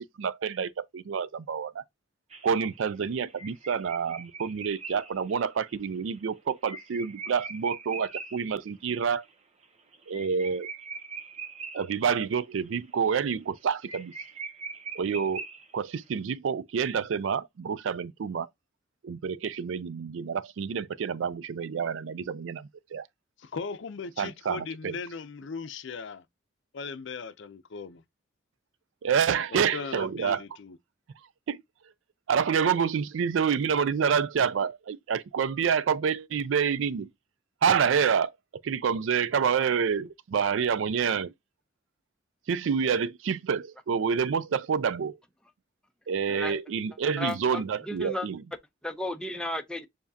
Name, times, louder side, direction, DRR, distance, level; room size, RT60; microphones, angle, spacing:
voice 1, 0.2-1.8 2.4-9.2 10.1-10.7 11.7-14.1 14.9-15.4 15.7-18.5 19.0-23.1 24.2-25.0 29.0-30.4 31.5-31.6 32.3-37.1 37.6-38.3 38.6-41.3 42.5-45.2 46.1-48.4, right 6 dB, 75° right, 0.4 m, -28 dB
sound 1, 2.3-8.5 8.8-8.9 9.2-9.3 9.6-12.2 12.6-12.9 13.2-13.3 13.6-13.7 13.9-16.0, right 4 dB, 35° right, 0.8 m, -42 dB
voice 2, 23.4-26.2 26.7-28.0 29.5-30.8, left 5 dB, 65° left, 0.5 m, -38 dB
voice 3, 46.3-46.6 47.2-48.3 48.8-49.9, left 1 dB, 5° left, 0.6 m, -34 dB
7.0 x 2.7 x 2.7 m
head